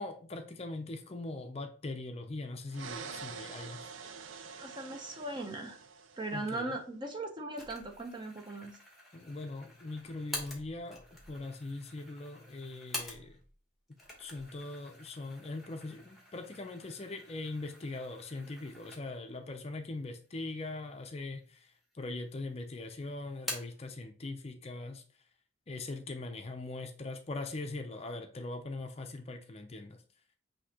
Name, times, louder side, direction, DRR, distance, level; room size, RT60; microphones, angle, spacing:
voice 1, 0.0-3.9 6.3-6.8 9.1-13.4 14.2-25.0 25.7-30.0, left 2 dB, 30° left, 5 dB, 0.5 m, -41 dB
sound 1, 2.7-6.6, right 6 dB, 80° right, 0.5 m, -46 dB
voice 2, 4.6-5.8 6.2-8.8, right 2 dB, 25° right, 4 dB, 0.7 m, -39 dB
sound 2, 7.6-13.6 13.9-19.4 19.8-19.9 20.7-21.4 21.7-22.5 22.8-23.9, left 2 dB, ahead, 1.1 m, -47 dB
6.2 x 2.8 x 2.8 m, 0.41 s
head